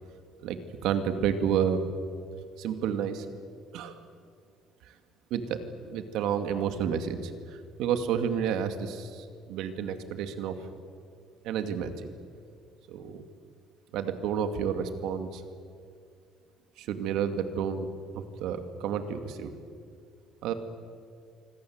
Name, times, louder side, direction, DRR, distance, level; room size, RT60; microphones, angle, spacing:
voice 1, 0.4-1.8 2.6-3.3 3.7-4.0 4.8-4.9 5.3-5.6 5.8-10.6 11.4-12.1 12.9-13.2 13.9-15.4 16.8-17.9 18.1-19.5 20.4-20.5, right 8 dB, 75° right, 8 dB, 2.4 m, -30 dB
25.5 x 25.5 x 8.1 m, 2.3 s
cardioid pair, 145°, 0 cm